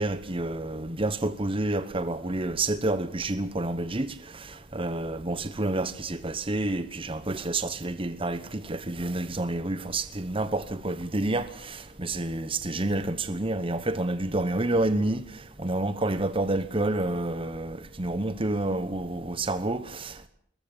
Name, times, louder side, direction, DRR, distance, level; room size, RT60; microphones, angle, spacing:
voice 1, 0.0-20.3, right 2 dB, 30° right, 1.0 m, -29 dB
23.0 x 21.0 x 7.3 m
head